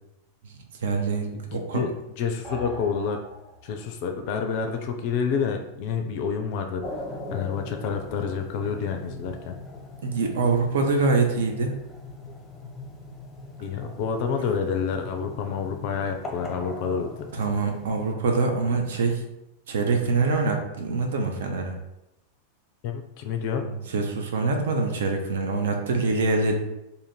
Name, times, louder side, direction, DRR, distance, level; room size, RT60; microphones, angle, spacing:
voice 1, 0.8-1.8 10.0-11.7 17.3-19.2 19.7-21.8 23.6-26.5, right 3 dB, 60° right, 3 dB, 0.6 m, -25 dB
voice 2, 1.3-1.9 2.2-3.2 3.6-9.5 13.6-17.3 22.8-23.7, left 6 dB, 45° left, 5 dB, 0.4 m, -29 dB
sound 1, 2.4-4.0, equal, 10° right, 1.1 m, -40 dB
sound 2, 6.8-18.1, left 2 dB, 15° left, 0.7 m, -40 dB
2.7 x 2.5 x 4.1 m, 0.88 s
figure-of-eight pair, 90°, 0 cm